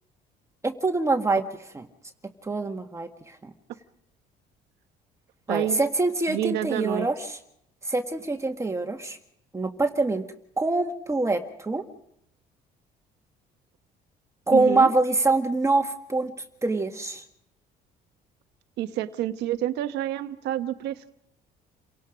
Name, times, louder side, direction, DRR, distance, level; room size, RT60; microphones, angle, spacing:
voice 1, 0.6-1.5 1.7-1.9 2.4-3.5 5.5-7.4 7.8-9.2 9.5-10.3 10.6-11.8 14.5-16.3 16.6-17.2, right 3 dB, 15° right, 5 dB, 1.8 m, -25 dB
voice 2, 5.5-5.8 6.3-7.1 14.5-14.9 18.8-21.1, right 13 dB, 80° right, 9 dB, 1.2 m, -28 dB
29.0 x 18.0 x 5.2 m, 0.74 s
cardioid pair, 110°, 17 cm